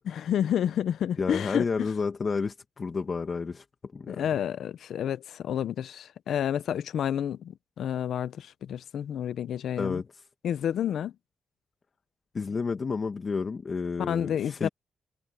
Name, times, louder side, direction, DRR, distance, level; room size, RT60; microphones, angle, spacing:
voice 1, 0.1-1.9 4.1-10.0 10.4-11.1 14.1-14.7, left 9 dB, 75° left, 0.7 m, -30 dB
voice 2, 1.2-4.3 9.8-10.2 12.3-14.7, left 5 dB, 35° left, 1.5 m, -31 dB
cardioid pair, 110°, 0 cm